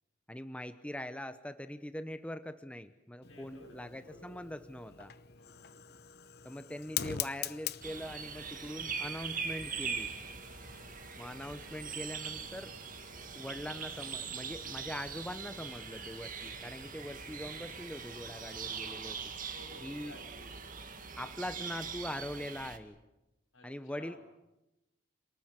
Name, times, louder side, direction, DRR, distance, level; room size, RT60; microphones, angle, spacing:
voice 1, 0.3-5.1 6.4-10.1 11.2-12.8 13.3-19.3 19.8-20.1 21.2-23.0 23.6-24.2, left 1 dB, 5° left, 11 dB, 0.8 m, -42 dB
voice 2, 3.2-4.7 5.3-6.0 10.6-10.9 17.3-17.5 19.4-21.5 23.5-24.2, left 1 dB, 85° left, 4 dB, 7.9 m, -56 dB
Fire, 3.2-18.9, left 10 dB, 55° left, 0.9 m, -46 dB
sound 1, 7.8-22.8, right 6 dB, 45° right, 2.1 m, -42 dB
27.5 x 19.5 x 9.2 m, 0.96 s
head